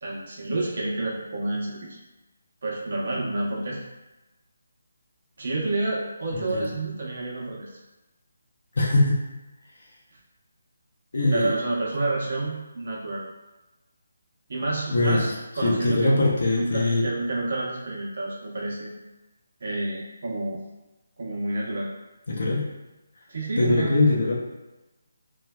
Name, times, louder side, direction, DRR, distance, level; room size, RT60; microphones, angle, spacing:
voice 1, 0.0-2.0 2.6-3.8 5.4-7.7 11.3-13.3 14.5-18.9 19.6-20.6 21.2-21.9 23.3-24.0, right 2 dB, 55° right, -3 dB, 0.8 m, -29 dB
voice 2, 8.8-9.2 11.1-11.6 14.9-15.2 15.6-17.1 22.3-22.6 23.6-24.4, left 2 dB, 65° left, -3 dB, 0.5 m, -22 dB
3.1 x 2.2 x 2.2 m, 1.1 s
figure-of-eight pair, 165°, 0 cm